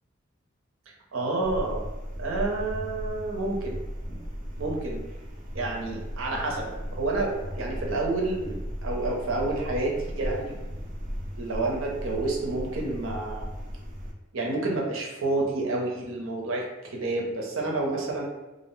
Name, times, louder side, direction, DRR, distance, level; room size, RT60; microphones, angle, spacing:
voice 1, 1.1-1.8 2.2-3.8 4.6-5.0 5.5-10.5 11.4-13.5 14.3-16.6 16.9-18.2, right 2 dB, 85° right, -1 dB, 0.6 m, -29 dB
sound 1, 1.4-14.1, equal, 40° right, 0.4 m, -36 dB
2.5 x 2.0 x 3.0 m, 1.0 s
head